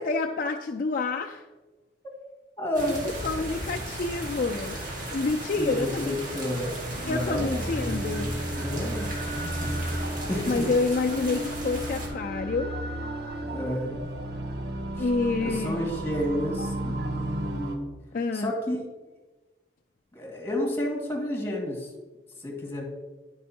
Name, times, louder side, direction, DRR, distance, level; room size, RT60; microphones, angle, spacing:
voice 1, 0.0-1.4 3.2-4.8 5.1-6.2 7.1-8.3 10.5-12.7 15.0-15.9 18.1-18.5, left 3 dB, 50° left, 3 dB, 0.4 m, -28 dB
voice 2, 2.6-3.1 3.3-3.4 5.6-7.7 8.5-9.8 10.3-10.7 13.4-14.1 15.0-15.1 15.4-17.9 18.3-18.8 20.1-21.9 22.4-22.8, equal, 15° left, -2 dB, 2.1 m, -31 dB
sound 1, 2.7-12.1, right 1 dB, 50° right, 1.9 m, -36 dB
sound 2, 6.7-17.8, right 1 dB, 65° right, 1.1 m, -34 dB
10.0 x 5.4 x 4.3 m, 1.2 s
head